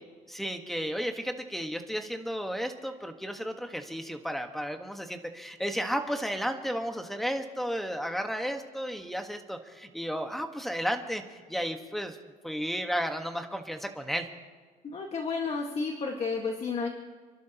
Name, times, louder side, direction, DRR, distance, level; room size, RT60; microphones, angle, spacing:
voice 1, 0.3-11.2 11.5-12.2 12.4-14.3, equal, ahead, 6 dB, 1.4 m, -33 dB
voice 2, 14.8-16.9, left 4 dB, 40° left, 2 dB, 1.7 m, -31 dB
28.5 x 12.0 x 3.0 m, 1.5 s
cardioid pair, 110°, 17 cm